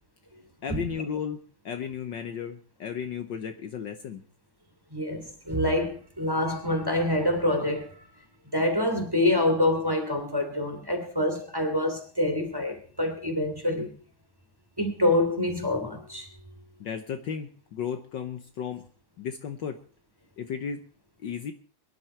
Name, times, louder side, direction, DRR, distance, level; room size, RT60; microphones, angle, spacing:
voice 1, 0.6-1.4 1.6-4.2 16.8-18.8 19.2-19.8 20.4-20.9 21.2-21.5, left 7 dB, 60° left, 1.6 m, -34 dB
voice 2, 4.9-8.0 8.5-13.9 14.8-16.3, left 1 dB, 10° right, 2.7 m, -26 dB
23.0 x 11.0 x 4.4 m
omnidirectional pair, 2.4 m